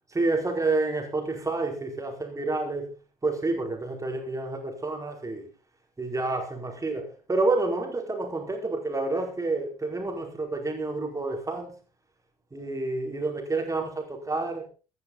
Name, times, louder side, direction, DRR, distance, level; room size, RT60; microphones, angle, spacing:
voice 1, 0.1-2.9 3.2-5.5 6.0-11.8 12.5-14.7, right 2 dB, 15° right, 4.7 m, -29 dB
15.0 x 13.5 x 4.1 m
figure-of-eight pair, 60°, 20 cm